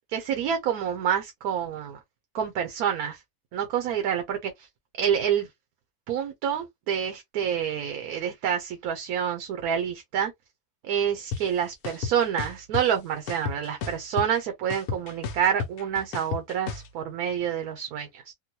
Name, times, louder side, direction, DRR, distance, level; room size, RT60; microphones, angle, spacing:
voice 1, 0.1-2.0 2.3-3.2 3.5-4.7 5.0-5.5 6.1-10.3 10.8-18.3, right 8 dB, 75° right, 1.1 m, -28 dB
sound 1, 11.3-11.4 11.8-12.8 13.3-14.4 14.7-16.9, left 6 dB, 75° left, 1.0 m, -32 dB
3.8 x 2.2 x 2.7 m
omnidirectional pair, 1.6 m